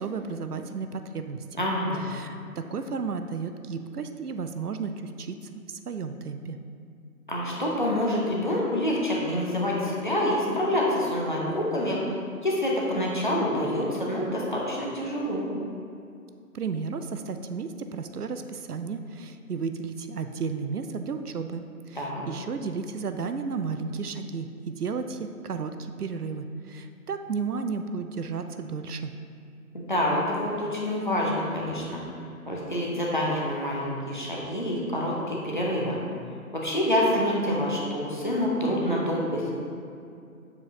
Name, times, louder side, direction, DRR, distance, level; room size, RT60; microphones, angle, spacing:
voice 1, 0.0-1.4 2.1-6.6 16.5-29.1, right 5 dB, 80° right, 8 dB, 0.6 m, -33 dB
voice 2, 1.5-2.0 7.3-12.0 12.4-15.5 22.0-22.2 29.7-32.0 32.5-36.0 36.5-39.5, left 1 dB, 35° left, -4 dB, 0.7 m, -27 dB
6.9 x 4.9 x 2.8 m, 2.5 s
figure-of-eight pair, 160°, 46 cm